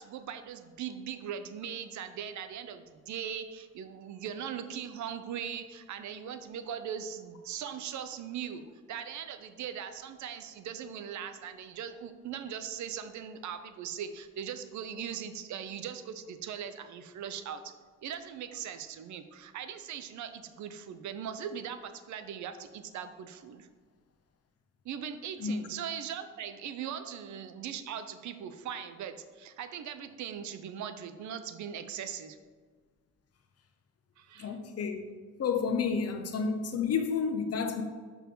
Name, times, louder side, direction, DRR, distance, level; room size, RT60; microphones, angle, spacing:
voice 1, 0.0-8.6 8.9-17.7 18.0-23.7 24.8-32.4 34.2-34.6, right 8 dB, 70° right, 0.6 m, -40 dB
voice 2, 34.4-35.1 35.4-37.8, left 5 dB, 55° left, 0.9 m, -30 dB
5.9 x 4.6 x 5.4 m
cardioid pair, 90°, 30 cm